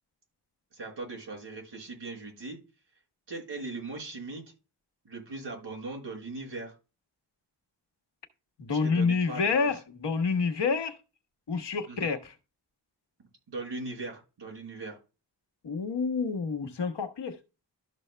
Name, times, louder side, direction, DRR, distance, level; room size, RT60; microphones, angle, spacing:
voice 1, 0.7-2.6 3.3-4.4 5.0-6.7 8.7-9.7 11.9-12.1 13.5-15.0, right 3 dB, 90° right, 4.3 m, -39 dB
voice 2, 8.6-11.0 11.5-12.3 15.6-17.4, left 5 dB, 75° left, 1.3 m, -28 dB
13.0 x 6.2 x 2.2 m
wide cardioid pair, 85°, 41 cm